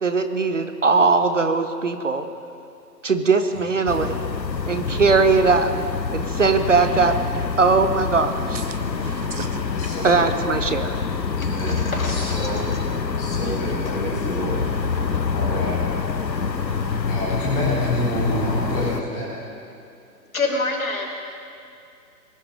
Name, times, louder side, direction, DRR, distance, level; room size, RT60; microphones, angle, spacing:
voice 1, 0.0-2.2 3.0-4.1 4.7-5.7 6.1-7.1 7.6-8.6 10.0-11.0, right 4 dB, 45° right, 0.9 m, -19 dB
sound 1, 3.9-19.0, left 5 dB, 80° left, 0.9 m, -26 dB
voice 2, 8.5-10.0 10.9-11.0 12.8-13.2 14.6-15.2 16.0-17.0, right 4 dB, 85° right, 1.1 m, -40 dB
voice 3, 9.8-10.3 11.4-12.6 13.2-14.6 15.3-15.7 17.1-19.3, left 1 dB, 5° left, 1.4 m, -28 dB
voice 4, 11.4-12.5 13.4-13.8 15.7-15.8 20.3-21.3, left 3 dB, 55° left, 2.4 m, -28 dB
21.5 x 11.0 x 3.7 m
figure-of-eight pair, 145°, 50 cm